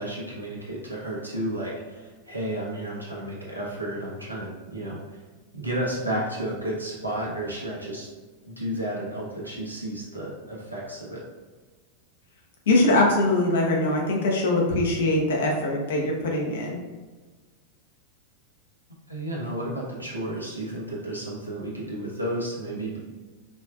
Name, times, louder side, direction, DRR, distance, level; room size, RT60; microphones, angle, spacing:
voice 1, 0.0-5.2 5.5-8.1 8.5-11.2 19.1-23.0, right 1 dB, 90° right, -5 dB, 1.1 m, -32 dB
voice 2, 12.7-16.8, left 2 dB, 60° left, 0 dB, 0.9 m, -22 dB
5.2 x 3.4 x 2.3 m, 1.4 s
figure-of-eight pair, 90°, 0 cm